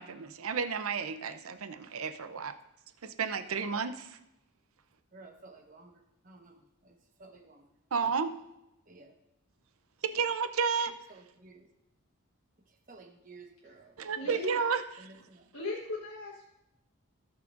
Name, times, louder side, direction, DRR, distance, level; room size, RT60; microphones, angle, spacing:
voice 1, 0.0-2.5 3.0-4.1 7.9-8.3 10.1-10.9 14.0-15.1, right 5 dB, 75° right, 10 dB, 0.6 m, -32 dB
voice 2, 3.3-3.8 5.1-7.7 8.9-9.1 11.1-11.7 12.7-14.4 15.0-15.5, right 3 dB, 40° right, 2 dB, 1.2 m, -55 dB
voice 3, 14.2-14.5 15.5-16.4, left 2 dB, 70° left, -4 dB, 1.4 m, -37 dB
17.5 x 5.9 x 2.5 m, 0.89 s
head